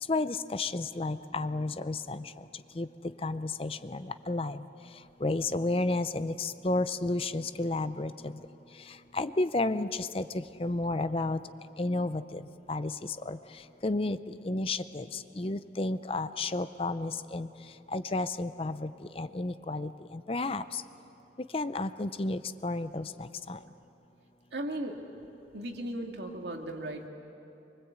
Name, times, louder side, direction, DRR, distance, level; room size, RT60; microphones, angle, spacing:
voice 1, 0.1-2.2 2.8-2.9 3.2-4.6 5.2-8.3 9.1-10.2 10.6-11.4 11.8-12.4 12.7-12.9 13.3-13.4 13.8-14.2 14.4-15.1 15.4-17.5 17.9-18.9 19.2-19.9 20.3-20.6 21.5-23.6, left 2 dB, 30° left, 12 dB, 0.6 m, -31 dB
voice 2, 24.5-25.0 25.5-27.1, right 1 dB, 75° right, 2 dB, 2.2 m, -36 dB
24.0 x 23.5 x 8.2 m, 2.9 s
head